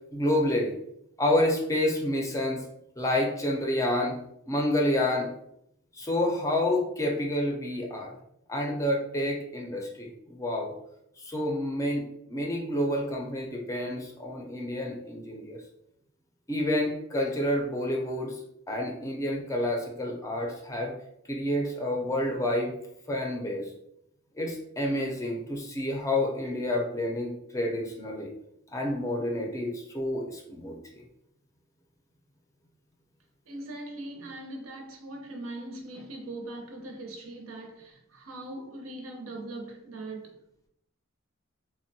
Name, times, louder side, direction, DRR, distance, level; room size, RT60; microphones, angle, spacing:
voice 1, 0.1-0.7 1.2-2.6 3.0-4.2 4.5-5.3 6.0-8.2 8.5-10.7 11.2-15.6 16.5-18.3 18.7-20.9 21.3-22.7 23.1-23.7 24.4-28.3 28.7-30.8, left 1 dB, 15° left, 0.4 m, -29 dB
voice 2, 33.5-40.4, right 2 dB, 80° right, 0.6 m, -40 dB
3.6 x 2.1 x 2.6 m
head